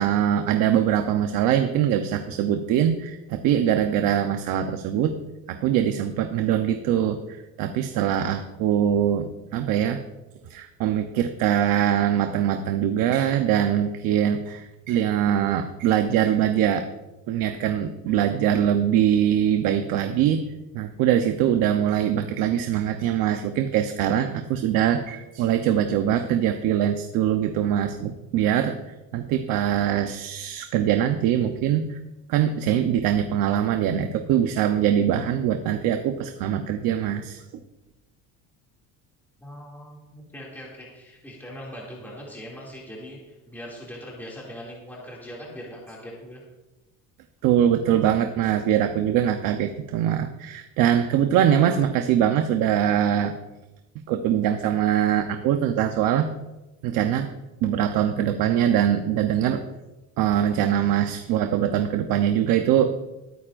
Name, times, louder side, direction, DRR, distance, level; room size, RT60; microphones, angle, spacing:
voice 1, 0.0-5.2 5.5-10.0 10.5-16.8 17.3-20.4 20.7-32.0 32.3-37.4 47.4-53.3 54.1-56.3 56.8-57.3 57.6-59.6 60.2-62.9, right 10 dB, 70° right, 6 dB, 0.9 m, -23 dB
voice 2, 39.4-46.4, equal, 5° left, -5 dB, 2.5 m, -41 dB
21.0 x 9.3 x 2.6 m, 1.0 s
cardioid pair, 155°, 35 cm